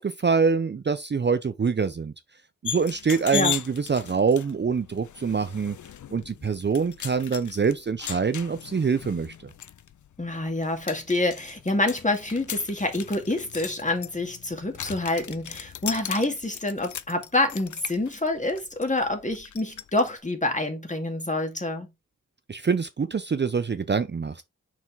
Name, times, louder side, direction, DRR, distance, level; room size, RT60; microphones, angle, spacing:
voice 1, 0.0-2.1 2.6-5.7 6.1-9.3 22.5-24.4, right 5 dB, 35° right, 0.6 m, -25 dB
sound 1, 2.6-20.1, left 9 dB, 70° left, 0.6 m, -38 dB
voice 2, 10.2-21.9, left 2 dB, 25° left, 2.2 m, -27 dB
6.0 x 4.7 x 3.5 m
cardioid pair, 55°, 31 cm